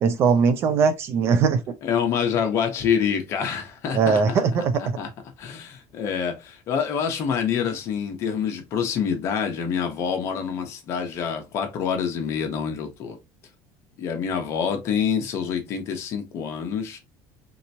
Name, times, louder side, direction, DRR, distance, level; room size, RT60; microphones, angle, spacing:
voice 1, 0.0-1.6 3.9-4.8, right 5 dB, 35° right, 0.3 m, -20 dB
voice 2, 1.8-4.2 5.0-5.1 5.4-13.2 14.0-17.0, left 7 dB, 35° left, 0.8 m, -26 dB
3.3 x 2.9 x 2.7 m
cardioid pair, 180°, 8 cm